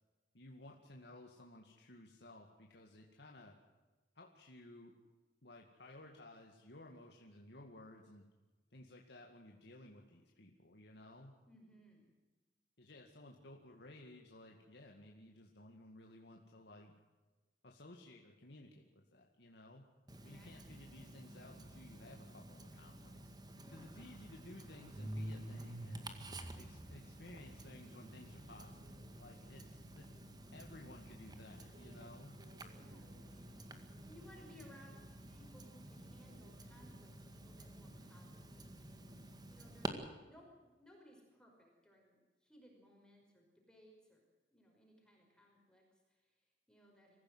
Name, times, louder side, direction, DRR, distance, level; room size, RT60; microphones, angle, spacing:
voice 1, 0.3-3.5 4.2-4.9 5.4-8.2 8.7-11.3 12.8-16.9 17.6-19.8 20.2-23.2 23.7-26.1 26.5-30.2 30.5-32.4, left 1 dB, 65° left, 1 dB, 2.2 m, -56 dB
voice 2, 11.5-12.1 20.1-20.8 23.6-24.0 32.7-33.2 34.1-39.0 39.2-39.9 40.2-44.2 44.5-47.2, equal, 5° left, -1 dB, 5.4 m, -63 dB
Tick-tock, 20.1-39.9, right 1 dB, 25° right, 2.0 m, -52 dB
sound 1, 24.9-36.5, right 1 dB, 45° right, 3.1 m, -52 dB
25.0 x 15.5 x 7.9 m, 1.2 s
head